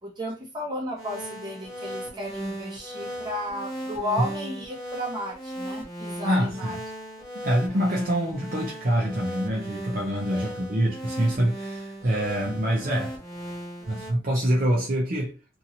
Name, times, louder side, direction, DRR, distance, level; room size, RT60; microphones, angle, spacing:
voice 1, 0.0-6.8 10.3-10.5, left 1 dB, 20° right, 1.0 m, -33 dB
sound 1, 1.0-14.1, equal, 20° left, 1.2 m, -37 dB
voice 2, 6.2-6.8 7.3-13.2 13.9-15.3, equal, 45° right, 0.6 m, -25 dB
2.7 x 2.6 x 2.8 m
head